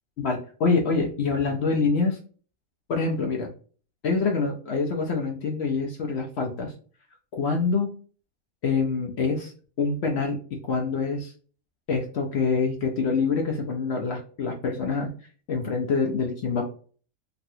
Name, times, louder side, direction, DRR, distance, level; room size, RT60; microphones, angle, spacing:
voice 1, 0.2-2.2 2.9-3.5 4.0-6.7 7.3-7.9 8.6-9.5 9.8-11.3 11.9-15.1 15.5-16.7, left 4 dB, 65° left, 2 dB, 0.6 m, -25 dB
3.0 x 2.5 x 2.7 m, 0.41 s
omnidirectional pair, 1.6 m